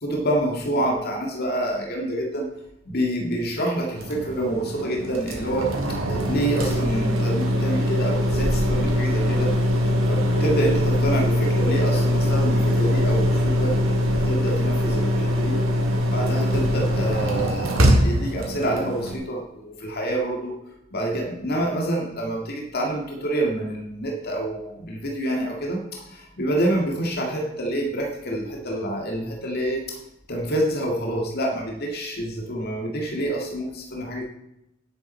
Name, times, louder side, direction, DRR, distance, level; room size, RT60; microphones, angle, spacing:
voice 1, 0.0-2.5 2.9-5.8 6.1-9.6 10.1-13.8 14.2-15.6 16.1-20.6 20.9-30.0 30.3-34.2, right 1 dB, 50° left, 0 dB, 2.0 m, -27 dB
sound 1, 4.0-19.2, equal, 75° right, 2.4 m, -22 dB
10.0 x 8.9 x 4.4 m, 0.85 s
head